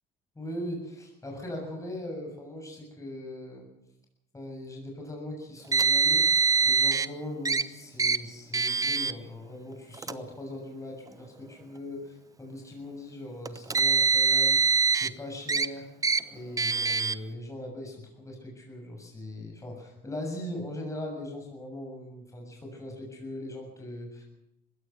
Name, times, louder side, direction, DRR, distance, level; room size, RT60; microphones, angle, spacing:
voice 1, 0.4-3.7 4.3-6.3 6.7-14.6 14.9-15.9 16.3-24.3, left 1 dB, 15° left, 1 dB, 7.1 m, -40 dB
Car, 5.7-7.1 7.4-7.6 8.0-8.2 8.5-9.1 9.9-10.1 11.1-11.2 13.5-15.1 15.5-15.7 16.0-16.2 16.6-17.1, right 5 dB, 15° right, 0.9 m, -23 dB
21.0 x 16.5 x 7.9 m, 0.83 s
cardioid pair, 110°, 20 cm